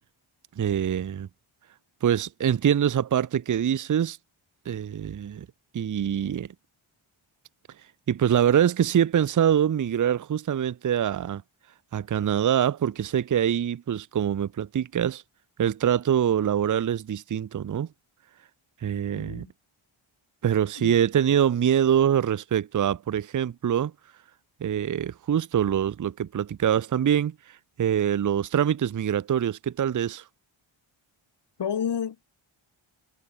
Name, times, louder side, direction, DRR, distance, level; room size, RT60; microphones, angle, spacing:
voice 1, 0.6-1.3 2.0-4.2 4.7-5.5 5.7-6.5 8.1-11.4 11.9-15.2 15.6-17.9 18.8-19.5 20.4-23.9 24.6-27.3 27.8-30.2, right 9 dB, 40° right, 0.6 m, -24 dB
voice 2, 19.1-19.5 20.8-21.0 31.6-32.2, left 8 dB, 55° left, 1.3 m, -30 dB
wide cardioid pair, 120°, 50 cm